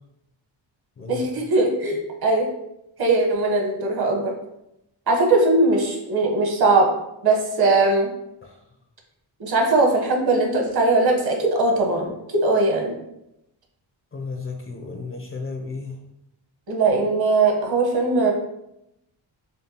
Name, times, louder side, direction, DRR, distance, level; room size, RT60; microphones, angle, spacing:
voice 1, 1.1-2.5 3.0-4.3 5.1-6.9 7.2-8.1 9.4-12.9 16.7-18.3, right 2 dB, 55° right, 1 dB, 1.0 m, -20 dB
voice 2, 14.1-15.9, left 4 dB, 30° left, 2 dB, 0.4 m, -33 dB
6.5 x 2.3 x 2.8 m, 0.85 s
wide cardioid pair, 130°, 46 cm